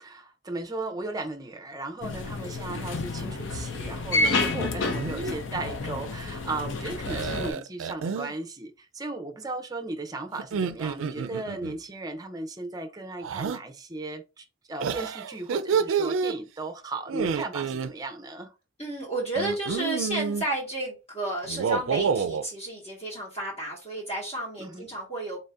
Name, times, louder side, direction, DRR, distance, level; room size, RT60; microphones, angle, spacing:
voice 1, 0.0-18.5 24.6-24.9, right 2 dB, 20° right, 0.6 m, -36 dB
sound 1, 2.0-7.5, left 3 dB, 80° left, 0.6 m, -30 dB
sound 2, 4.1-4.5 4.8-5.3 7.1-8.3 10.4-11.8 13.2-13.6 14.8-16.3 17.1-17.9 19.4-20.5 21.4-22.5, right 6 dB, 90° right, 0.3 m, -29 dB
voice 2, 4.2-4.8 18.8-25.4, right 1 dB, 30° left, 1.2 m, -32 dB
4.0 x 2.7 x 3.4 m
head